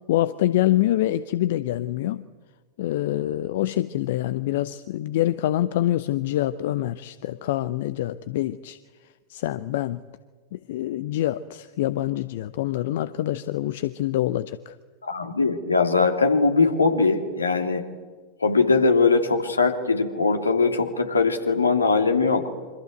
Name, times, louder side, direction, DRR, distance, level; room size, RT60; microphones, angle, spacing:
voice 1, 0.1-2.2 2.8-8.8 9.3-10.0 10.5-14.8, left 14 dB, 55° left, 15 dB, 0.7 m, -25 dB
voice 2, 15.0-17.9 18.4-22.5, left 4 dB, 75° left, 6 dB, 2.7 m, -21 dB
27.5 x 25.0 x 8.1 m, 1.5 s
figure-of-eight pair, 90°, 0 cm